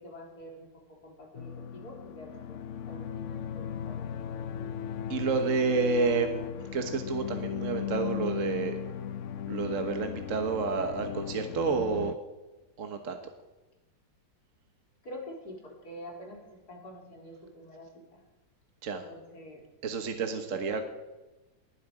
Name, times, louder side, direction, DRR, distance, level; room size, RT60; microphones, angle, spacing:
voice 1, 0.0-2.6 2.9-4.7 15.0-18.2 18.9-19.6 20.5-20.6, equal, 55° left, -1 dB, 4.1 m, -47 dB
sound 1, 1.3-12.1, left 9 dB, 80° left, 0.6 m, -37 dB
voice 2, 5.1-6.4 6.7-8.7 9.5-12.1 12.8-13.2 18.8-19.0 19.8-20.8, right 4 dB, 45° right, 6 dB, 1.4 m, -29 dB
19.5 x 11.5 x 5.0 m, 1.1 s
omnidirectional pair, 2.0 m